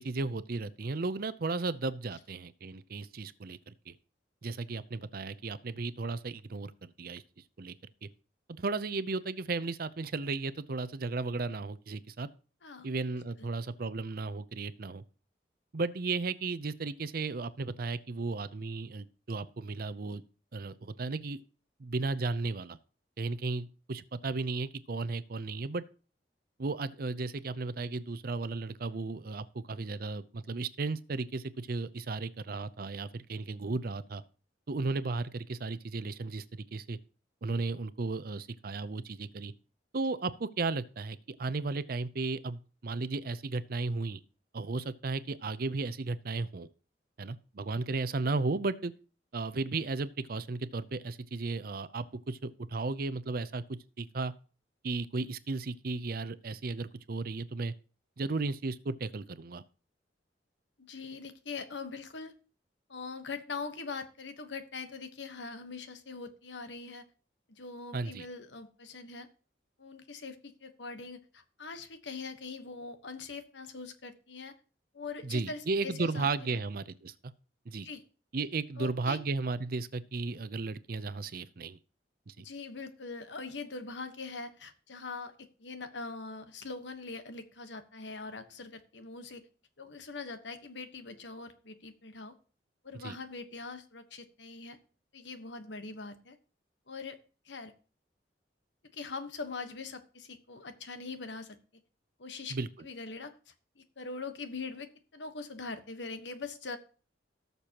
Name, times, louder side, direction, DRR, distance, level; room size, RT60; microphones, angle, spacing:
voice 1, 0.0-4.0 4.4-7.2 7.6-7.7 8.5-12.3 12.8-15.0 15.7-20.2 20.5-21.4 21.8-22.8 23.2-25.8 26.6-34.2 34.7-37.0 37.4-39.5 39.9-44.2 44.5-46.7 47.2-48.9 49.3-54.3 54.8-57.7 58.2-59.6 67.9-68.3 75.2-77.3 77.7-77.9 78.3-81.8 82.3-82.4 92.9-93.2 102.5-102.7, right 3 dB, 55° right, 15 dB, 0.6 m, -35 dB
voice 2, 60.8-62.3 62.9-67.0 67.6-69.3 69.8-74.6 74.9-76.6 77.8-78.0 78.8-79.2 82.4-89.4 89.8-92.3 92.8-94.8 95.1-96.4 96.9-97.2 97.4-97.7 98.9-101.6 102.2-102.6 102.8-106.8, left 4 dB, 75° left, 9 dB, 1.2 m, -42 dB
18.0 x 6.8 x 2.9 m, 0.38 s
head